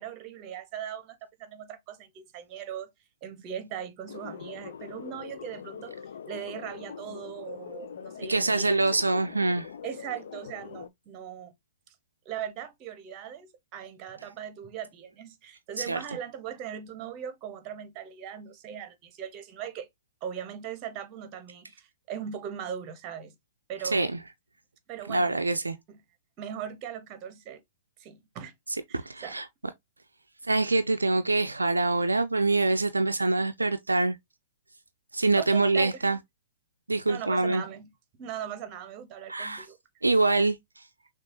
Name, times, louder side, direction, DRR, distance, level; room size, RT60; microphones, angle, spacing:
voice 1, 0.0-2.9 3.2-5.9 6.3-8.8 9.1-9.2 9.8-11.5 12.2-19.9 20.2-23.3 23.7-24.0 24.9-25.4 25.9-26.0 26.4-27.6 28.0-28.5 28.9-29.3 35.4-36.0 37.1-37.9 38.2-39.8, right 9 dB, 35° right, 1.0 m, -39 dB
sound 1, 4.1-10.9, left 8 dB, 65° left, 0.4 m, -43 dB
voice 2, 8.3-9.7 15.8-16.0 23.8-24.2 25.1-25.8 28.9-29.5 30.4-34.2 35.1-36.2 36.9-37.6 39.3-39.7 40.0-40.9, right 2 dB, 85° right, 0.4 m, -25 dB
6.0 x 2.4 x 2.7 m
figure-of-eight pair, 110°, 0 cm